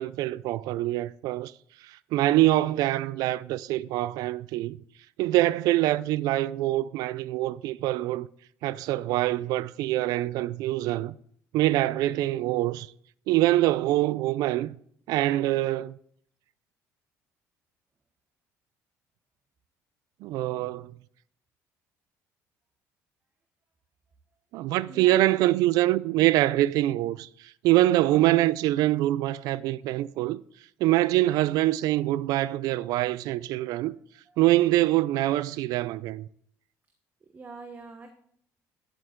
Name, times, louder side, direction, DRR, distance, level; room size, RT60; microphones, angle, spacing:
voice 1, 0.0-1.5 1.8-4.8 5.2-8.3 8.6-11.1 11.5-12.9 13.3-14.8 15.1-16.0 20.2-20.9 24.5-30.4 30.8-33.9 34.4-36.3, right 16 dB, 75° right, 0.4 m, -24 dB
voice 2, 24.9-25.3 34.3-34.4 37.3-38.1, right 3 dB, 30° right, 1.0 m, -44 dB
10.0 x 7.8 x 3.7 m
cardioid pair, 110°, 6 cm